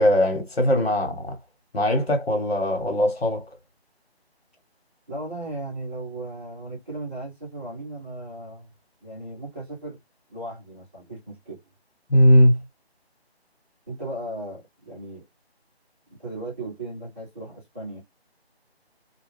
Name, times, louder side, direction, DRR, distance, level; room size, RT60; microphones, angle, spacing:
voice 1, 0.0-1.4 1.7-3.4 12.1-12.6, equal, 65° left, 1.4 m, -19 dB
voice 2, 5.1-8.7 9.0-10.0 10.3-11.6 13.9-15.2 16.2-18.0, right 2 dB, 10° right, 0.9 m, -36 dB
2.4 x 2.2 x 3.3 m
figure-of-eight pair, 165°, 32 cm